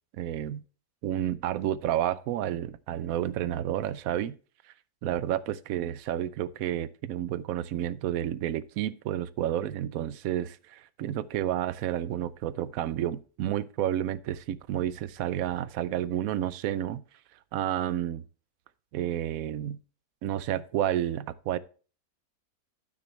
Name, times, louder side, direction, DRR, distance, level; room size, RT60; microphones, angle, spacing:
voice 1, 0.1-0.6 1.0-4.4 5.0-17.0 17.5-18.2 18.9-19.8 20.2-21.6, right 11 dB, 70° right, 1.0 m, -30 dB
12.0 x 6.2 x 3.2 m
omnidirectional pair, 1.6 m